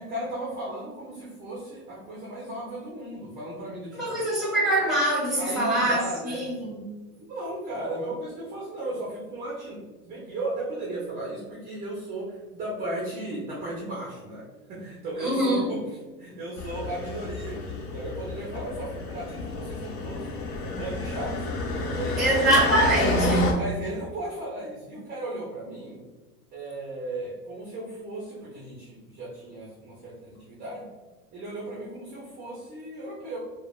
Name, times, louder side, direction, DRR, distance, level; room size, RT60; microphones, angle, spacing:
voice 1, 0.0-4.2 5.4-6.7 7.2-9.8 10.1-20.3 20.6-21.5 21.8-22.5 23.5-26.0 26.5-30.8 31.3-33.4, right 1 dB, 20° right, -5 dB, 0.5 m, -35 dB
voice 2, 3.9-6.9 15.2-15.7 22.2-23.6, right 1 dB, ahead, -5 dB, 1.0 m, -24 dB
sound 1, 16.6-23.5, left 3 dB, 85° left, 0.7 m, -30 dB
3.1 x 2.2 x 2.3 m, 1.2 s
supercardioid pair, 125°, 47 cm